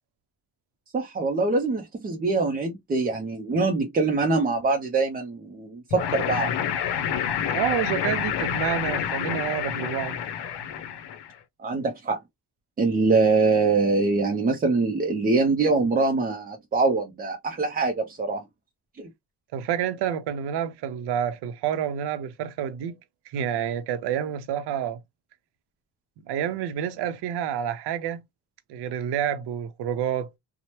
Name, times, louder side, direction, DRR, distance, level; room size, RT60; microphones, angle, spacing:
voice 1, 0.9-6.5 11.6-12.2 12.8-18.4 19.0-19.1, right 3 dB, 25° right, 0.4 m, -24 dB
sound 1, 5.9-11.3, left 8 dB, 70° left, 0.6 m, -28 dB
voice 2, 7.5-10.2 19.5-22.9 23.3-25.0 26.3-28.2 28.7-30.3, right 9 dB, 70° right, 0.6 m, -28 dB
2.8 x 2.0 x 3.0 m
cardioid pair, 105°, 42 cm